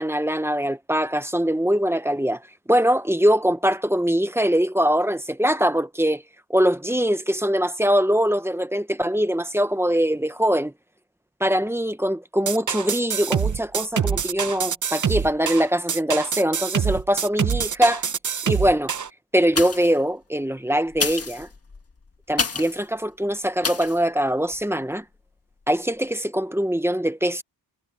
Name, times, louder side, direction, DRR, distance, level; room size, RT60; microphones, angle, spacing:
voice 1, 0.0-2.4 2.7-6.2 6.5-10.7 11.4-18.1 18.5-18.9 19.3-21.5 22.3-25.0 25.7-27.4, equal, 5° right, 0.8 m, -22 dB
sound 1, 12.5-19.1, right 7 dB, 40° right, 0.8 m, -25 dB
sound 2, 19.5-20.0 20.9-22.8 23.6-24.0 24.5-24.6, left 4 dB, 30° left, 1.5 m, -28 dB
wide cardioid pair, 175°, 45 cm